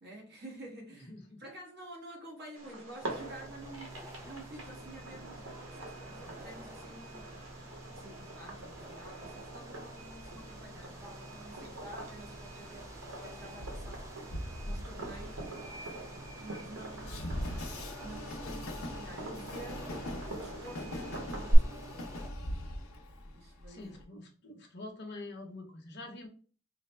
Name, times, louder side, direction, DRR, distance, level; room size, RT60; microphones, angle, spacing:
voice 1, 0.0-7.5 7.9-14.1 14.6-15.5 16.4-17.7 18.0-22.1 23.3-24.0, right 1 dB, 50° right, 1.3 m, -50 dB
voice 2, 1.1-1.4 23.7-26.3, left 2 dB, 55° left, 0.9 m, -46 dB
Fireworks, 2.5-21.5, right 1 dB, 70° right, 1.1 m, -43 dB
sound 1, 3.0-22.3, right 1 dB, 15° right, 0.4 m, -50 dB
Train, 13.6-24.0, left 1 dB, 80° left, 0.8 m, -41 dB
4.9 x 2.1 x 3.3 m
head